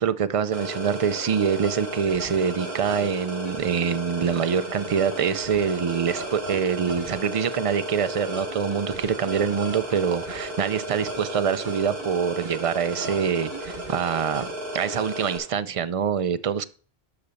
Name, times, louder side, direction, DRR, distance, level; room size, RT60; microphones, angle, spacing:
voice 1, 0.0-14.4 14.7-16.7, right 7 dB, 45° right, 0.5 m, -25 dB
sound 1, 0.5-15.4, right 1 dB, 70° right, 3.7 m, -34 dB
12.0 x 4.0 x 6.8 m
omnidirectional pair, 1.0 m